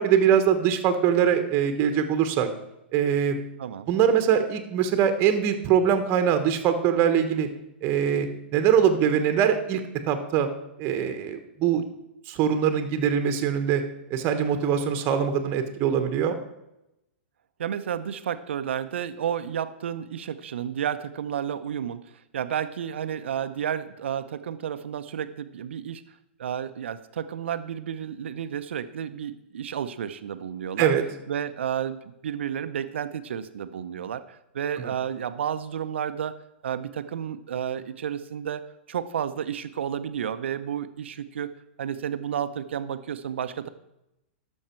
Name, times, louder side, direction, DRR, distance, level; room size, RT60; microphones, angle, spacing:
voice 1, 0.0-2.5 2.9-3.4 3.9-7.5 7.8-8.3 8.5-9.8 10.1-10.5 10.8-11.8 12.3-13.8 14.1-16.4 30.8-31.0 34.8-34.9, right 8 dB, 35° right, 8 dB, 1.3 m, -22 dB
voice 2, 17.6-22.0 22.3-26.0 26.4-30.9 31.3-36.3 36.6-38.6 38.9-41.5 41.8-43.7, right 9 dB, 75° right, 11 dB, 0.8 m, -31 dB
12.5 x 6.4 x 4.5 m, 0.88 s
hypercardioid pair, 125°, 6 cm